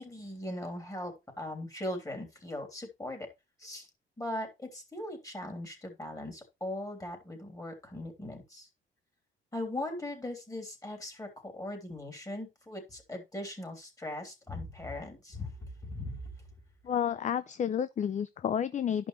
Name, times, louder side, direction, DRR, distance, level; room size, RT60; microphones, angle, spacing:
voice 1, 0.0-3.3 3.6-3.9 4.2-8.7 9.5-16.3, left 1 dB, 15° left, 3.1 m, -39 dB
voice 2, 16.8-19.1, left 8 dB, 40° left, 0.4 m, -30 dB
11.5 x 5.4 x 3.1 m
cardioid pair, 90°, 20 cm